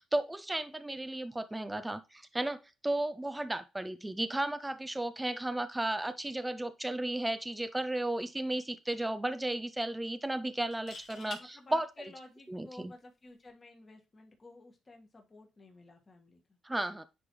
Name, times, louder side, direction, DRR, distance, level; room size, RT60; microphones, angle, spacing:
voice 1, 0.0-11.9 12.5-12.9 16.6-17.1, right 1 dB, 10° right, 0.4 m, -34 dB
sound 1, 7.8-8.0 8.3-8.4 10.6-11.4 13.3-13.5, left 4 dB, 65° left, 2.0 m, -46 dB
voice 2, 11.1-16.6, left 2 dB, 30° left, 1.7 m, -54 dB
9.7 x 3.3 x 3.1 m
cardioid pair, 90°, 0 cm